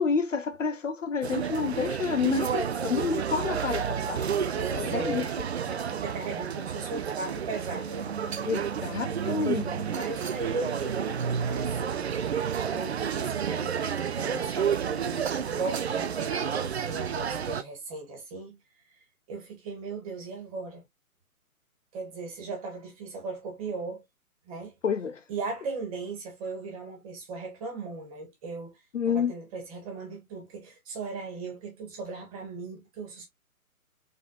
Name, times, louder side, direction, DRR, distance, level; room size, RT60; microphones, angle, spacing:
voice 1, 0.0-5.2 8.4-9.9 24.8-25.2 28.9-29.3, left 6 dB, 55° left, 0.8 m, -29 dB
sound 1, 1.2-17.6, right 7 dB, 50° right, 0.5 m, -30 dB
voice 2, 4.5-5.3 5.6-8.1 9.8-12.0 12.7-13.9 14.1-18.6 19.3-20.8 21.9-24.0 24.4-24.7 25.3-28.7 29.1-33.3, right 4 dB, 25° right, 1.7 m, -37 dB
4.0 x 3.7 x 2.4 m
figure-of-eight pair, 140°, 44 cm